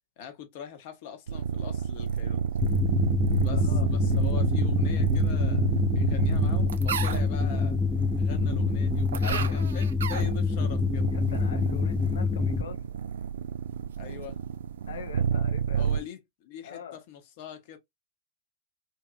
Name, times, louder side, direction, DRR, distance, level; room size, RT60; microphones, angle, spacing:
voice 1, 0.2-2.4 3.3-7.8 8.2-11.1 14.0-14.4 15.7-17.8, left 9 dB, 55° left, 0.9 m, -43 dB
sound 1, 1.3-16.0, right 7 dB, 75° right, 0.4 m, -30 dB
sound 2, 2.6-12.6, left 4 dB, 10° left, 0.3 m, -26 dB
voice 2, 3.5-3.9 9.2-9.6 11.1-12.9 14.9-16.1 16.6-17.0, left 8 dB, 70° left, 0.5 m, -43 dB
2.9 x 2.8 x 2.3 m
figure-of-eight pair, 90°, 0 cm